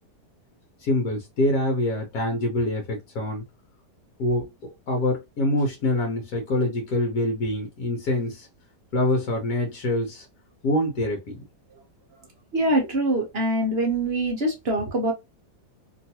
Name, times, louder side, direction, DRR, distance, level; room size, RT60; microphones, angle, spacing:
voice 1, 0.8-3.4 4.2-4.5 4.9-8.5 8.9-10.3 10.6-11.4, left 1 dB, 60° left, 1.2 m, -25 dB
voice 2, 12.5-15.1, right 1 dB, 50° right, 0.7 m, -24 dB
3.0 x 2.6 x 2.8 m
omnidirectional pair, 1.9 m